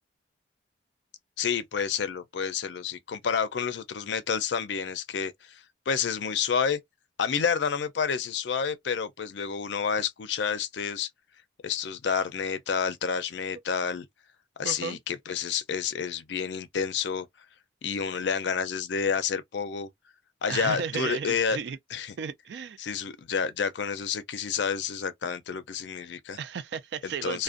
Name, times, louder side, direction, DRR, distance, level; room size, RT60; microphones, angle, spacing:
voice 1, 1.4-6.8 7.2-11.1 11.6-14.1 14.6-17.3 17.8-19.9 20.4-21.6 21.9-22.1 22.8-26.4 27.0-27.4, left 6 dB, 70° left, 0.4 m, -29 dB
voice 2, 14.6-15.0 20.5-21.8 22.2-22.8 26.3-27.4, right 6 dB, 65° right, 0.3 m, -34 dB
2.4 x 2.1 x 2.4 m
head